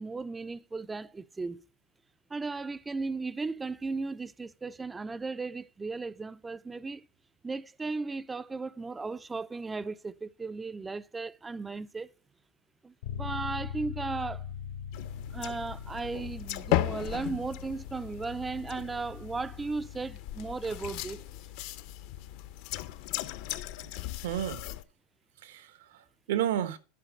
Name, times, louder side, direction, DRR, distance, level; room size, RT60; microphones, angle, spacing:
voice 1, 0.0-1.6 2.3-7.1 7.4-12.1 12.8-14.4 15.3-21.2, right 3 dB, 10° right, 0.4 m, -36 dB
sound 1, 13.0-22.8, left 8 dB, 85° left, 1.6 m, -43 dB
sound 2, 14.9-24.8, left 15 dB, 55° left, 0.6 m, -36 dB
voice 2, 23.8-24.7 25.4-26.8, right 11 dB, 80° right, 1.1 m, -33 dB
11.0 x 4.9 x 5.0 m
supercardioid pair, 145°, 0 cm